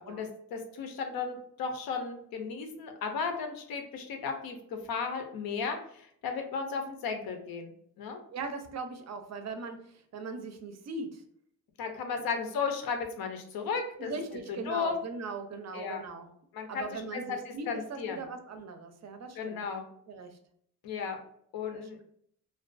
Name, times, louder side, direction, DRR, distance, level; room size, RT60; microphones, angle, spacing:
voice 1, 0.0-8.2 11.8-14.1 14.7-14.9 15.7-16.0 16.5-18.3 19.4-19.9 20.8-21.2 21.5-22.0, left 5 dB, 90° left, 5 dB, 0.6 m, -35 dB
voice 2, 8.3-11.2 14.0-16.3 16.7-19.7 20.1-20.4 21.7-21.9, right 4 dB, 50° right, 7 dB, 0.4 m, -40 dB
2.4 x 2.2 x 2.4 m, 0.67 s
cardioid pair, 120°, 35 cm